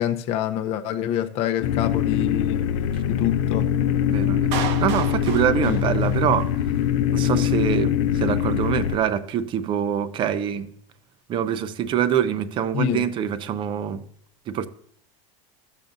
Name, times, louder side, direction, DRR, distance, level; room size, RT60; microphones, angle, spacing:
voice 1, 0.0-2.7 3.1-3.7 5.6-5.8 12.7-13.0, left 10 dB, 40° left, 0.6 m, -26 dB
sound 1, 1.6-9.0, left 10 dB, 80° left, 0.7 m, -23 dB
voice 2, 4.1-4.5 4.8-6.5 7.1-10.7 11.3-14.0 14.5-14.7, right 9 dB, 30° right, 0.6 m, -24 dB
Clapping, 4.5-6.5, right 8 dB, 65° right, 0.9 m, -33 dB
12.5 x 7.3 x 2.6 m
supercardioid pair, 155°, 16 cm